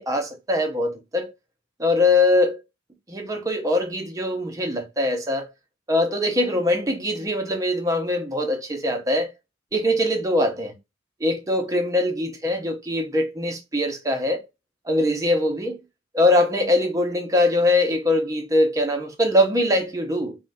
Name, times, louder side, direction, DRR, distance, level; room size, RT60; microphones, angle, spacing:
voice 1, 0.0-1.3 1.8-2.6 3.1-5.5 5.9-9.3 9.7-10.8 11.2-14.5 14.9-15.8 16.1-20.4, left 1 dB, 15° right, 0.5 m, -22 dB
3.5 x 2.1 x 2.5 m
head